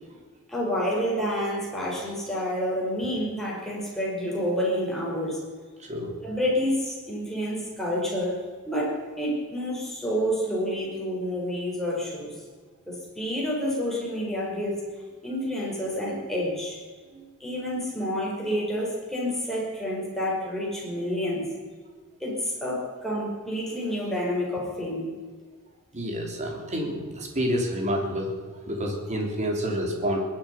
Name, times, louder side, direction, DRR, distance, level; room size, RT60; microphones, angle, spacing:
voice 1, 0.5-5.4 6.2-8.3 8.7-12.3 12.9-14.8 15.2-16.8 17.4-21.4 22.2-25.1, equal, ahead, -5 dB, 5.4 m, -29 dB
voice 2, 5.8-6.2 17.1-17.3 25.9-28.3 28.7-30.2, equal, 35° right, 1 dB, 3.1 m, -28 dB
21.5 x 11.0 x 5.7 m, 1.5 s
head